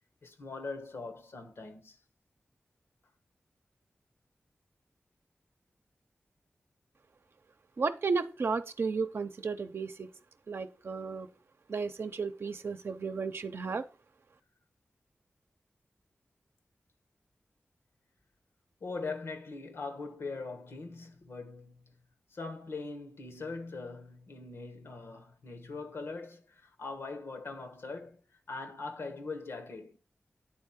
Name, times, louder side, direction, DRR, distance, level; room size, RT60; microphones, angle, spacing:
voice 1, 0.2-2.0 18.8-22.0 22.3-28.2 28.5-30.0, left 3 dB, 85° left, 1.1 m, -41 dB
voice 2, 7.8-10.1 10.5-11.3 11.7-13.9, right 4 dB, 70° right, 0.7 m, -33 dB
9.4 x 3.7 x 5.7 m
wide cardioid pair, 65°, 4 cm